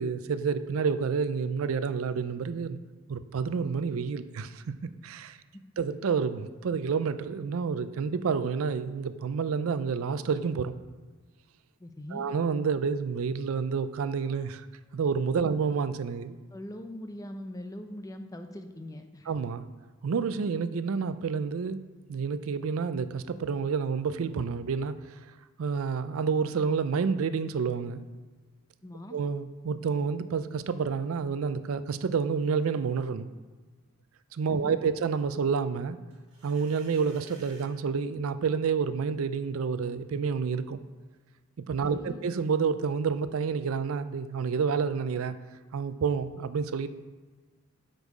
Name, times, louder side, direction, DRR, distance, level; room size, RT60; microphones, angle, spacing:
voice 1, 0.0-2.8 3.1-5.4 5.8-10.8 12.1-14.7 14.9-16.4 19.3-19.7 20.0-21.8 22.1-25.2 25.6-28.0 29.1-33.3 34.3-36.0 36.4-40.8 41.7-45.4 45.7-46.9, right 5 dB, 75° right, 12 dB, 0.4 m, -29 dB
voice 2, 11.8-12.3 16.5-19.3 28.8-29.2 34.5-34.9 41.8-42.2, left 1 dB, 15° left, 7 dB, 0.5 m, -42 dB
sound 1, 36.1-37.7, right 2 dB, 35° right, 2.8 m, -55 dB
8.1 x 5.4 x 4.8 m, 1.3 s
head